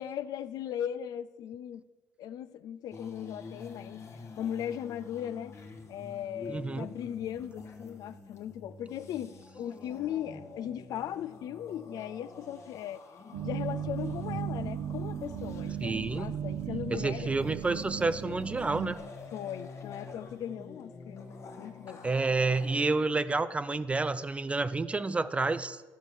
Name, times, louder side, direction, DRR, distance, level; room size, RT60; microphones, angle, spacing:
voice 1, 0.0-1.8 2.2-4.0 4.4-5.6 5.9-13.0 13.4-17.5 17.7-18.4 19.3-21.3 21.6-22.0, left 10 dB, 65° left, 15 dB, 0.4 m, -38 dB
sound 1, 2.9-22.8, left 4 dB, 45° left, 1.3 m, -48 dB
voice 2, 6.5-6.9 15.8-16.3 16.9-19.0 22.0-25.8, right 3 dB, 15° right, 15 dB, 0.4 m, -29 dB
sound 2, 13.3-19.0, right 9 dB, 75° right, 0.7 m, -36 dB
11.5 x 4.6 x 6.8 m, 1.3 s
cardioid pair, 100°, 7 cm